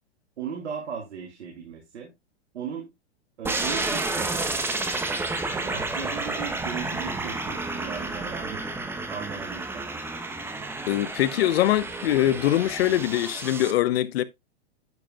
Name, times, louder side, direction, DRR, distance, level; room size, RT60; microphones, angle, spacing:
voice 1, 0.4-2.1 2.5-2.9 3.4-4.5 5.5-8.8 9.1-9.9, right 7 dB, 80° right, 2.5 m, -37 dB
sound 1, 3.4-13.7, right 2 dB, 5° right, 1.0 m, -31 dB
voice 2, 10.9-14.2, left 13 dB, 60° left, 1.0 m, -23 dB
12.0 x 5.0 x 2.3 m
hypercardioid pair, 130°, 34 cm